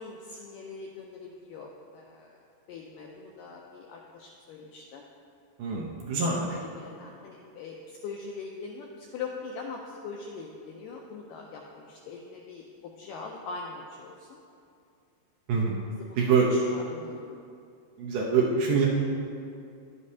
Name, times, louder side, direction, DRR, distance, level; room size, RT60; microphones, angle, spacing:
voice 1, 0.0-5.0 6.4-14.4 15.9-16.2 16.5-17.4, left 4 dB, 90° left, 0 dB, 1.9 m, -42 dB
voice 2, 5.6-6.4 15.5-15.8 16.2-16.5 18.0-18.9, right 5 dB, 75° right, -3 dB, 2.1 m, -24 dB
11.0 x 8.4 x 2.8 m, 2.4 s
omnidirectional pair, 4.6 m